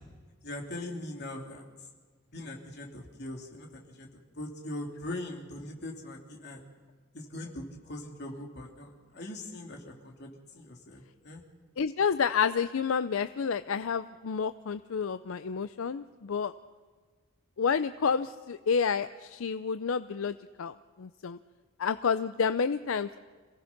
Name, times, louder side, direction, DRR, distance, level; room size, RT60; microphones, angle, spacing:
voice 1, 0.4-1.6 2.3-6.6 7.1-11.4, left 1 dB, 55° left, 1 dB, 2.9 m, -41 dB
voice 2, 11.8-16.5 17.6-21.4 21.8-23.2, left 6 dB, 75° left, 12 dB, 0.5 m, -29 dB
26.5 x 17.5 x 5.9 m, 1.5 s
head